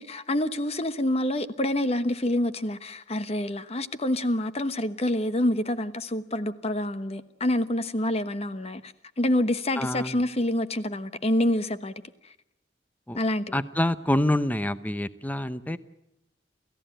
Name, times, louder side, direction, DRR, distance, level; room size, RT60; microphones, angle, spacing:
voice 1, 0.0-11.9 13.1-13.6, left 1 dB, 35° left, 11 dB, 1.2 m, -27 dB
voice 2, 9.8-10.2 13.1-13.2 13.5-15.8, left 1 dB, 10° left, 13 dB, 0.8 m, -26 dB
29.0 x 15.0 x 9.0 m, 0.89 s
head